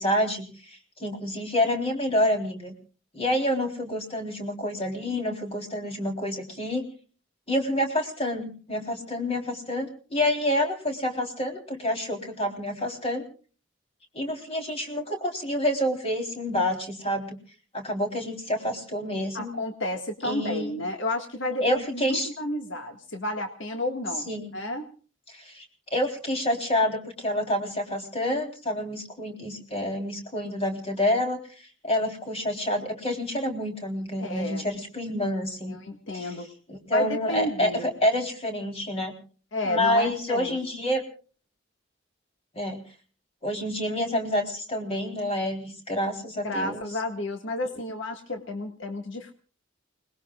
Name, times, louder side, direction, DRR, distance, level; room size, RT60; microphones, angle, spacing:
voice 1, 0.0-2.7 3.1-6.9 7.5-13.2 14.1-17.4 17.7-19.5 20.2-20.8 21.6-22.3 24.3-24.5 25.3-25.6 25.9-31.4 31.8-35.8 36.1-36.3 36.7-39.2 39.6-41.0 42.6-42.8 43.4-46.8, left 1 dB, 30° left, 3 dB, 3.7 m, -28 dB
voice 2, 19.3-24.3 24.5-24.9 34.2-34.6 35.7-36.5 36.9-37.8 39.5-40.6 46.4-49.3, left 1 dB, 75° left, 4 dB, 1.8 m, -31 dB
29.5 x 20.5 x 2.4 m, 0.39 s
head